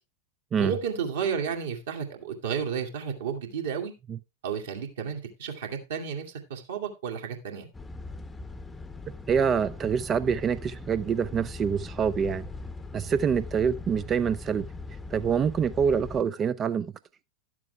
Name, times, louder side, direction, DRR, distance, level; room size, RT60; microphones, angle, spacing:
voice 1, 0.6-3.9 4.4-7.7, right 7 dB, 60° right, 2.1 m, -32 dB
sound 1, 7.7-16.2, left 3 dB, 10° left, 0.8 m, -41 dB
voice 2, 9.3-12.5 12.9-14.7 15.1-16.9, right 7 dB, 25° right, 0.4 m, -26 dB
11.5 x 7.4 x 3.4 m
figure-of-eight pair, 90°, 0 cm